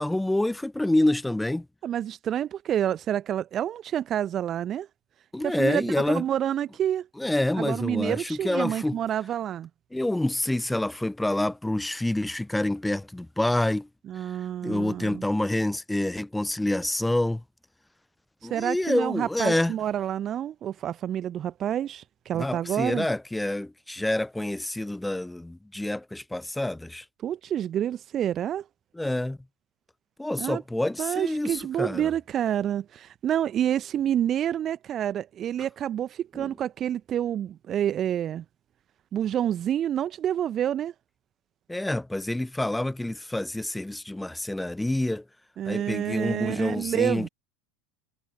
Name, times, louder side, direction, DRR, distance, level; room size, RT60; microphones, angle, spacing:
voice 1, 0.0-1.7 5.3-6.2 7.2-9.0 9.9-13.9 14.6-17.4 18.4-19.7 22.3-27.0 29.0-29.4 30.2-32.1 36.3-36.5 41.7-45.2 45.7-47.3, left 1 dB, 5° left, 0.6 m, -27 dB
voice 2, 1.8-4.9 5.4-7.1 7.6-9.7 14.1-15.2 18.5-23.1 27.2-28.6 30.4-30.6 31.0-38.4 39.1-40.9 45.6-47.3, right 10 dB, 35° right, 0.9 m, -28 dB
figure-of-eight pair, 75°, 0 cm